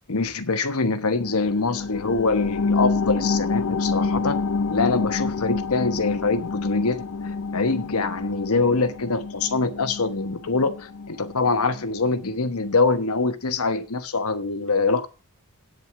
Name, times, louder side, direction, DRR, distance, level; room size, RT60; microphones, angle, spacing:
voice 1, 0.1-4.4 4.7-7.0 7.5-15.1, left 3 dB, 80° left, 11 dB, 1.2 m, -24 dB
sound 1, 1.2-12.3 12.7-12.8, left 4 dB, 65° left, 0.5 m, -28 dB
9.0 x 7.9 x 7.0 m, 0.34 s
head